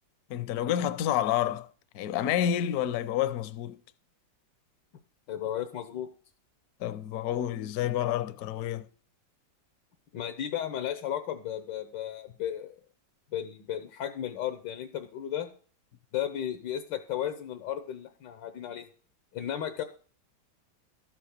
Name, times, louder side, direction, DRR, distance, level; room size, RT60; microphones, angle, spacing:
voice 1, 0.3-1.7 1.9-3.8 6.8-8.9, left 11 dB, 65° left, 1.0 m, -29 dB
voice 2, 5.3-6.1 10.1-12.8 13.3-15.5 16.1-18.9 19.3-19.8, left 10 dB, 85° left, 1.6 m, -34 dB
13.0 x 5.9 x 6.5 m
omnidirectional pair, 1.9 m